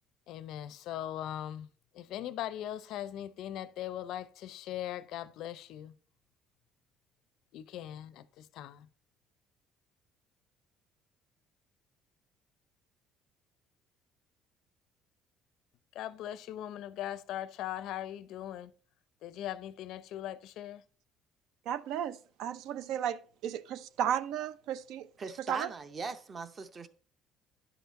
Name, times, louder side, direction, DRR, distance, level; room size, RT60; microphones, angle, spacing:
voice 1, 0.3-1.7 1.9-5.9 7.5-8.9 15.9-18.7 19.2-20.8, left 12 dB, 60° left, 0.5 m, -40 dB
voice 2, 21.7-25.1 25.4-25.7, right 9 dB, 65° right, 0.5 m, -34 dB
voice 3, 25.2-26.9, right 4 dB, 25° right, 0.6 m, -40 dB
10.5 x 5.8 x 4.1 m
cardioid pair, 175°, 0 cm